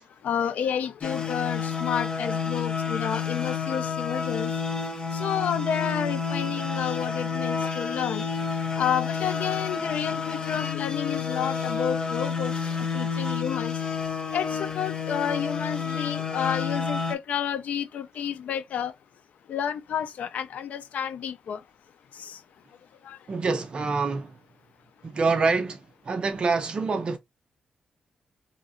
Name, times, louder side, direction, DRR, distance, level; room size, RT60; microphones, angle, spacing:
voice 1, 0.2-4.5 5.1-8.3 8.8-12.5 12.9-13.7 14.3-18.9 19.5-21.6 22.2-22.4 23.1-23.2, left 8 dB, 85° left, 0.4 m, -30 dB
sound 1, 1.0-17.1, left 6 dB, 35° left, 0.6 m, -30 dB
voice 2, 23.3-24.3 25.0-27.2, right 4 dB, 40° right, 0.5 m, -26 dB
3.0 x 2.8 x 2.5 m
wide cardioid pair, 150°, 2 cm